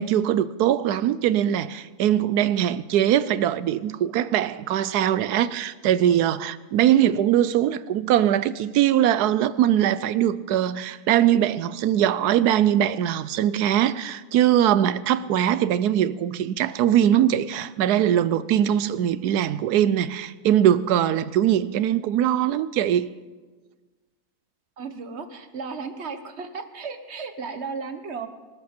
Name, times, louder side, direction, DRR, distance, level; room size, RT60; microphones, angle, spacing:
voice 1, 0.0-23.1, right 11 dB, 90° right, 1.2 m, -21 dB
voice 2, 24.8-28.3, right 5 dB, 45° right, 1.4 m, -34 dB
25.5 x 12.5 x 4.4 m
omnidirectional pair, 1.6 m